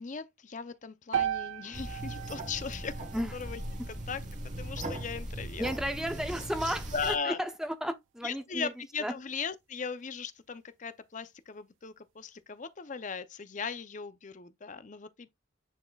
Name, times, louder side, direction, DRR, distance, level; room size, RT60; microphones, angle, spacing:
voice 1, 0.0-3.1 3.3-3.6 3.9-4.2 4.6-5.7 6.9-7.4 8.2-15.3, left 5 dB, 40° left, 0.5 m, -38 dB
sound 1, 1.1-5.3, right 9 dB, 70° right, 0.4 m, -37 dB
sound 2, 1.7-7.2, right 1 dB, 35° right, 1.4 m, -39 dB
voice 2, 5.6-8.7 9.0-9.1, equal, 5° right, 0.8 m, -33 dB
10.0 x 4.2 x 2.3 m
head